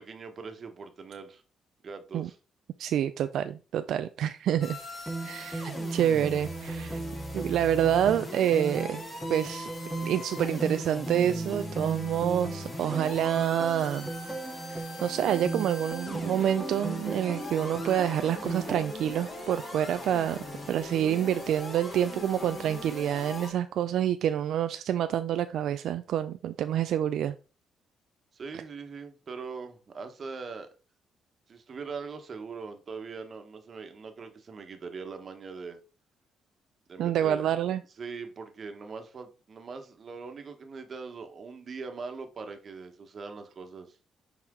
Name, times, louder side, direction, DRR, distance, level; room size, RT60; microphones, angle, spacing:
voice 1, 0.0-1.4 1.8-2.4 28.3-30.7 31.5-35.8 36.9-37.6 38.0-44.0, right 4 dB, 45° right, 1.2 m, -41 dB
voice 2, 2.8-4.8 5.2-7.0 7.3-9.0 9.3-9.7 10.0-14.1 14.7-27.3 37.0-37.8, right 10 dB, 75° right, 0.3 m, -27 dB
sound 1, 4.6-23.5, left 2 dB, 40° left, 2.7 m, -41 dB
sound 2, 5.1-18.8, right 3 dB, 5° right, 1.1 m, -36 dB
6.0 x 4.3 x 3.7 m
cardioid pair, 90°, 0 cm